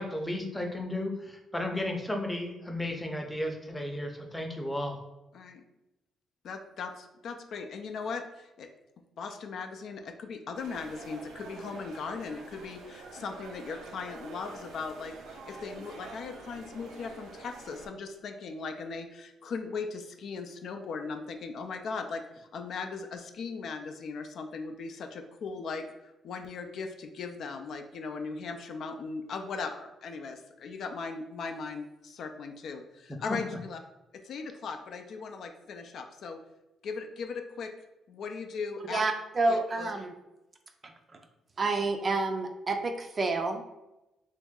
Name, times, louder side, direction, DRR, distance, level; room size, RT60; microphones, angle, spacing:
voice 1, 0.0-5.0 33.3-33.4, left 1 dB, 10° left, 2 dB, 0.6 m, -34 dB
voice 2, 5.3-5.6 6.4-8.7 9.2-33.8 34.2-36.4 36.8-37.7 38.1-39.1 39.5-39.9, left 4 dB, 65° left, 5 dB, 0.4 m, -38 dB
sound 1, 10.5-17.9, right 3 dB, 90° right, 0.5 m, -47 dB
voice 3, 38.9-40.1 40.8-40.9 41.6-43.6, right 3 dB, 35° right, 5 dB, 0.4 m, -29 dB
3.0 x 2.6 x 3.6 m, 0.95 s
cardioid pair, 90°, 0 cm